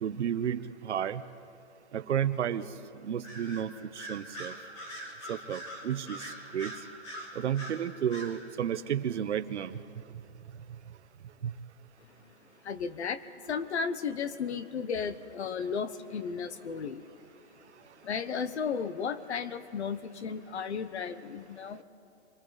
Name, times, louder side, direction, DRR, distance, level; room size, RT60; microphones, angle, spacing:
voice 1, 0.0-1.2 1.9-2.7 3.0-4.5 5.3-6.3 6.5-6.7 7.3-9.7 11.4-11.5, right 9 dB, 85° right, 12 dB, 1.0 m, -32 dB
Bird vocalization bird call bird song, 3.2-3.6 4.0-7.8 8.1-8.3, equal, 25° left, 2.7 m, -42 dB
voice 2, 12.6-17.1 18.0-21.8, left 6 dB, 80° left, 13 dB, 1.2 m, -34 dB
28.0 x 23.5 x 4.0 m, 2.6 s
hypercardioid pair, 180°, 33 cm